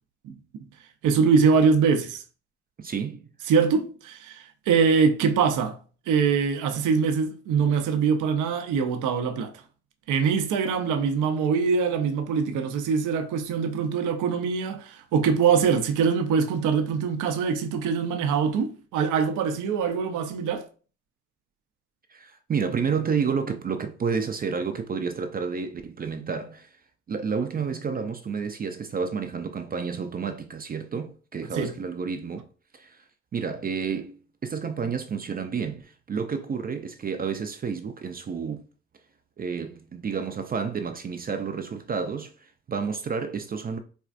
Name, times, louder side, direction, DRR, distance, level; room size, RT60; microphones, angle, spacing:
voice 1, 1.0-2.2 3.5-5.8 6.1-9.5 10.1-20.7 31.5-31.7, right 6 dB, 80° right, 0.6 m, -23 dB
voice 2, 2.8-3.3 22.1-26.8 27.1-32.5 32.7-33.0 33.3-38.6 39.4-43.8, right 6 dB, 30° right, 0.4 m, -30 dB
4.3 x 2.4 x 2.5 m
cardioid pair, 90°, 30 cm